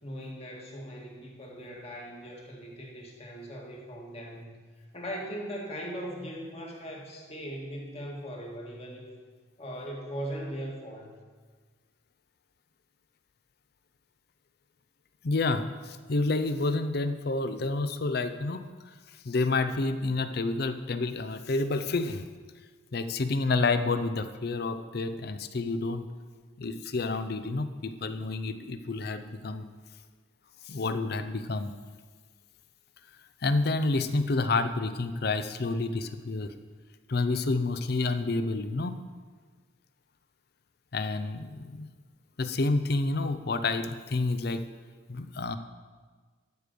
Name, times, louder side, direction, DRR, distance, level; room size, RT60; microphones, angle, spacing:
voice 1, 0.0-4.5 4.9-9.1 9.6-11.1, equal, 30° left, -2 dB, 1.8 m, -39 dB
voice 2, 15.2-18.7 19.2-22.2 22.9-26.1 26.6-29.7 30.7-31.7 33.4-36.5 37.1-39.0 40.9-41.9 42.4-44.6 45.1-45.6, left 3 dB, 55° left, 10 dB, 0.6 m, -29 dB
12.5 x 5.1 x 6.7 m, 1.5 s
head